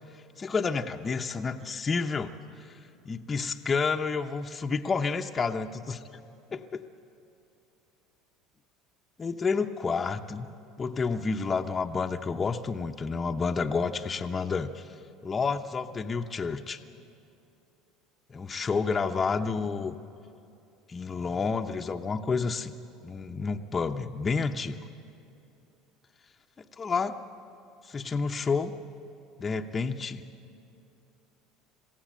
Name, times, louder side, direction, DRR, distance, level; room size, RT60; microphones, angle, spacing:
voice 1, 0.4-2.3 2.7-2.8 3.0-6.0 6.5-6.9 9.2-10.5 10.8-14.9 15.2-16.8 18.3-19.9 20.9-22.7 23.0-24.8 26.8-27.2 27.8-28.7 29.4-30.2, left 4 dB, 30° left, 4 dB, 0.8 m, -30 dB
21.5 x 15.5 x 8.8 m, 2.7 s
hypercardioid pair, 85°, 0 cm